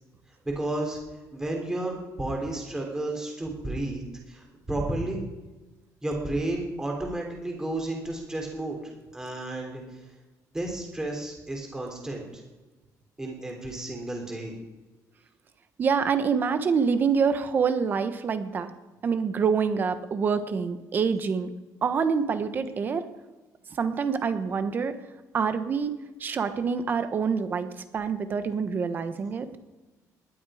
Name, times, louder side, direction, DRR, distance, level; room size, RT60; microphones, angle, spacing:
voice 1, 0.4-1.0 1.3-4.0 4.3-5.2 6.0-8.8 9.1-9.8 10.5-12.4 13.2-14.6, right 2 dB, 10° right, 1 dB, 3.4 m, -32 dB
voice 2, 15.8-18.7 19.0-21.5 21.8-23.0 23.8-24.9 25.3-25.9 26.2-29.5, right 6 dB, 30° right, 10 dB, 1.2 m, -26 dB
19.0 x 11.5 x 5.0 m, 1.2 s
cardioid pair, 180°, 7 cm